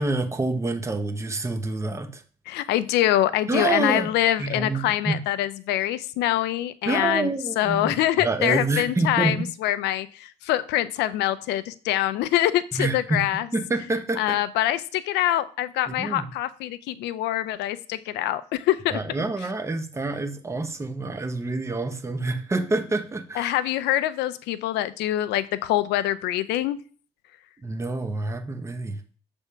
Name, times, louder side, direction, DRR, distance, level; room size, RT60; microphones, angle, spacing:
voice 1, 0.0-2.2 3.5-4.1 4.4-5.2 6.9-9.5 12.7-13.2 13.5-14.4 15.9-16.3 18.9-23.5 27.6-29.0, right 3 dB, 15° right, 7 dB, 1.0 m, -27 dB
voice 2, 2.5-7.3 7.6-13.5 14.2-19.0 23.4-26.8, left 13 dB, 85° left, 15 dB, 0.5 m, -24 dB
7.0 x 3.5 x 5.6 m, 0.42 s
cardioid pair, 110°, 17 cm